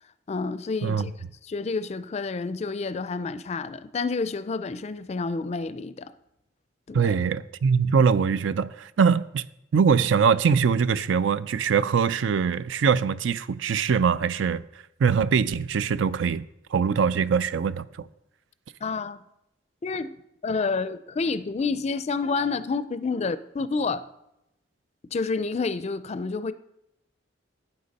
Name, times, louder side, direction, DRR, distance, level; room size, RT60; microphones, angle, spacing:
voice 1, 0.3-1.1 1.4-6.1 6.9-7.2 18.8-19.2 19.8-20.2 20.4-24.1 25.1-26.5, left 4 dB, 35° left, 0.4 m, -29 dB
voice 2, 6.9-9.5 9.7-14.6 15.0-16.4 16.7-18.1, right 6 dB, 80° right, 0.4 m, -22 dB
11.5 x 9.1 x 4.1 m
head